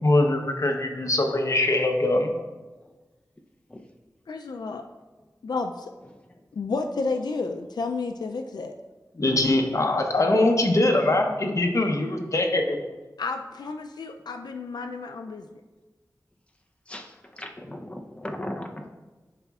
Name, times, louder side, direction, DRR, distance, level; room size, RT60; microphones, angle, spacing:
voice 1, 0.0-2.4 9.2-12.8, left 2 dB, 50° left, 3 dB, 0.8 m, -22 dB
voice 2, 4.3-4.8 5.4-5.9 6.5-8.7 13.2-15.5, left 4 dB, 90° left, 5 dB, 0.3 m, -31 dB
voice 3, 16.9-18.9, left 1 dB, 15° left, 3 dB, 0.6 m, -37 dB
11.0 x 4.1 x 2.4 m, 1.2 s
wide cardioid pair, 75°, 7 cm